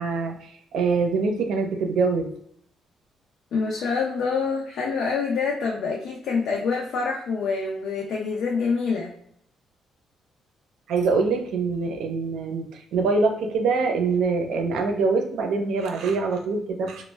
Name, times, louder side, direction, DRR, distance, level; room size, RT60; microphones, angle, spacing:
voice 1, 0.0-2.3 10.9-17.1, right 4 dB, 80° right, 3 dB, 0.5 m, -24 dB
voice 2, 3.5-9.1, left 5 dB, 75° left, -1 dB, 0.5 m, -26 dB
2.1 x 2.1 x 3.3 m, 0.70 s
cardioid pair, 90°, 0 cm